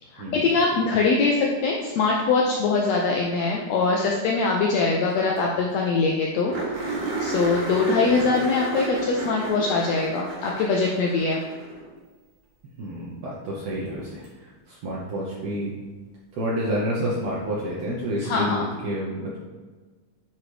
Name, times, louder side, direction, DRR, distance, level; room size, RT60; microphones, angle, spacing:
voice 1, 0.1-11.4 18.2-18.7, left 4 dB, 80° left, -1 dB, 1.5 m, -23 dB
sound 1, 5.1-5.2 5.4-5.5 5.8-5.9 6.5-11.9 14.2-14.3 17.2-17.3, right 3 dB, 85° right, 3.5 m, -32 dB
voice 2, 8.1-8.4 12.8-15.7 16.3-19.4, equal, 70° right, -5 dB, 1.9 m, -29 dB
9.4 x 4.1 x 3.3 m, 1.4 s
omnidirectional pair, 3.6 m